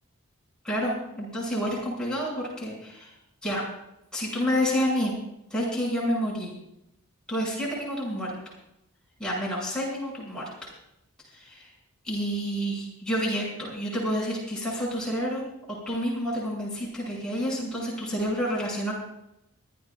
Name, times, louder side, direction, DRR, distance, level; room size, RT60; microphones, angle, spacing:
voice 1, 0.6-3.1 3.4-3.6 4.1-5.1 5.5-6.5 7.3-8.3 9.2-10.7 11.3-11.6 12.0-19.0, equal, 5° left, -6 dB, 6.3 m, -29 dB
25.5 x 14.5 x 2.3 m, 0.81 s
head